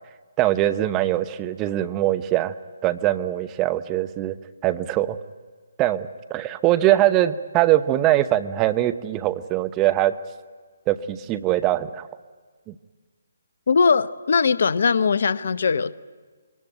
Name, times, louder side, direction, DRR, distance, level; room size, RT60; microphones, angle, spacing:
voice 1, 0.4-2.5 2.8-4.4 4.6-5.2 5.8-10.1 10.9-12.1 12.7-12.8, right 14 dB, 20° right, 12 dB, 0.7 m, -22 dB
voice 2, 13.7-15.9, left 5 dB, 60° left, 16 dB, 0.7 m, -20 dB
23.0 x 18.5 x 9.2 m, 1.5 s
figure-of-eight pair, 140°, 0 cm